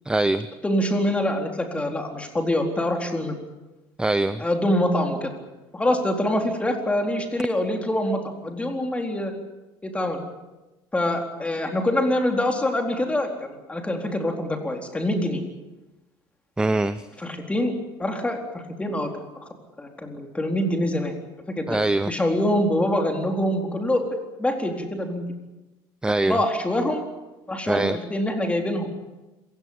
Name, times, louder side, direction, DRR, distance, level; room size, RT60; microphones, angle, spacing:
voice 1, 0.1-0.5 4.0-4.4 16.6-17.0 21.7-22.1 26.0-26.4 27.7-28.0, right 2 dB, 10° right, 14 dB, 0.7 m, -22 dB
voice 2, 0.6-3.4 4.4-5.3 5.7-9.3 9.8-10.2 10.9-15.4 17.2-17.7 18.0-19.3 19.8-21.1 21.5-21.7 22.1-24.1 24.4-25.2 26.3-27.1 27.5-28.9, left 1 dB, 10° left, 3 dB, 4.0 m, -25 dB
27.0 x 16.5 x 8.8 m, 1.1 s
cardioid pair, 125°, 10 cm